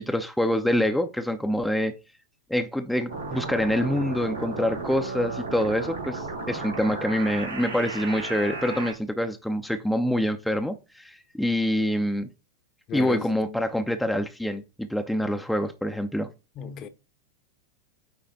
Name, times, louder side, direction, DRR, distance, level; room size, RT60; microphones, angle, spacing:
voice 1, 0.0-1.9 2.5-12.3 12.9-16.3, equal, ahead, 0.7 m, -26 dB
sound 1, 3.1-8.9, right 3 dB, 80° right, 2.8 m, -34 dB
voice 2, 12.9-13.6 16.6-16.9, left 6 dB, 35° left, 0.9 m, -35 dB
9.1 x 3.3 x 4.0 m
figure-of-eight pair, 90°, 0 cm